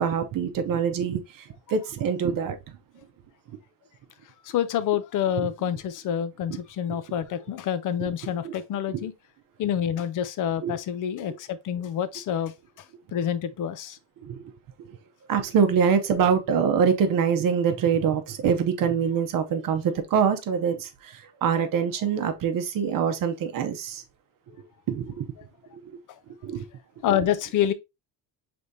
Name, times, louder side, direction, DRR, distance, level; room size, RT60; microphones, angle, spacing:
voice 1, 0.0-2.6 8.4-8.5 8.9-9.0 10.6-10.8 14.2-14.5 15.3-24.0 24.9-25.3 25.7-25.8 26.4-26.6, right 7 dB, 50° right, 0.8 m, -24 dB
voice 2, 4.4-9.1 9.6-12.9 13.1-14.0 27.0-27.7, left 9 dB, 50° left, 0.5 m, -27 dB
5.0 x 3.4 x 2.6 m
cardioid pair, 140°, 42 cm